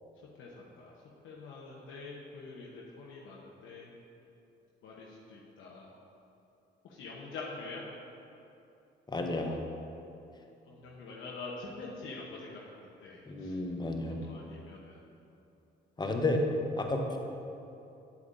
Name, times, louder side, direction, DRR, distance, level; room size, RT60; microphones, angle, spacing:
voice 1, 0.4-0.9 1.2-3.9 4.8-5.9 6.8-7.8 10.7-12.6 13.0-13.6 14.2-15.0, left 3 dB, 80° left, -4 dB, 0.9 m, -45 dB
voice 2, 9.1-9.5 13.3-14.2 16.0-16.4 16.8-17.2, left 2 dB, 20° left, 2 dB, 0.9 m, -31 dB
8.6 x 8.1 x 2.6 m, 2.8 s
cardioid pair, 90°, 20 cm